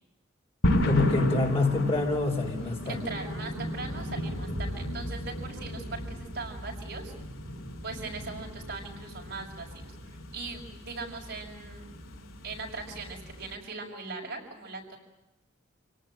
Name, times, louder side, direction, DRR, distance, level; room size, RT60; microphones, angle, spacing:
sound 1, 0.6-13.5, equal, 75° left, 6.2 m, -34 dB
voice 1, 0.8-3.0, left 3 dB, 30° left, 1 dB, 4.8 m, -26 dB
voice 2, 2.8-7.1 7.8-11.9 12.4-15.0, right 3 dB, 55° right, 1 dB, 6.4 m, -40 dB
28.5 x 19.0 x 8.9 m, 0.91 s
head